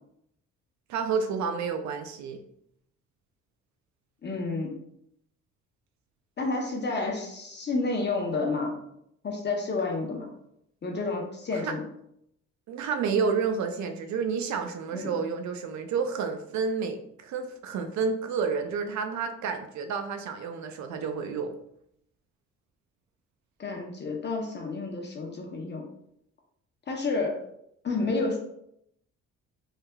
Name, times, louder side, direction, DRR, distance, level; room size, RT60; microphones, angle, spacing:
voice 1, 0.9-2.4 11.5-11.7 12.7-21.6, right 5 dB, 70° right, 6 dB, 0.4 m, -30 dB
voice 2, 4.2-4.7 6.4-8.8 9.2-10.3 10.8-11.8 14.9-15.2 23.6-25.8 26.9-27.4 27.8-28.4, left 3 dB, 35° left, 0 dB, 0.7 m, -30 dB
3.3 x 3.2 x 2.2 m, 0.73 s
cardioid pair, 90°, 30 cm